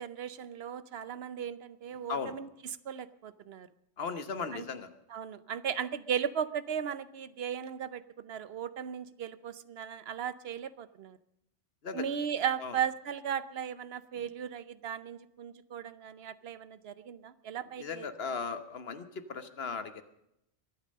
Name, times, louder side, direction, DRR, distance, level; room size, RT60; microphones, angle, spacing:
voice 1, 0.0-3.7 4.5-4.6 5.1-11.2 11.9-18.1, right 8 dB, 60° right, 15 dB, 0.9 m, -36 dB
voice 2, 4.0-4.9 11.8-12.1 12.6-12.8 17.8-20.0, left 5 dB, 55° left, 9 dB, 1.4 m, -37 dB
23.5 x 8.8 x 6.4 m, 0.81 s
omnidirectional pair, 1.3 m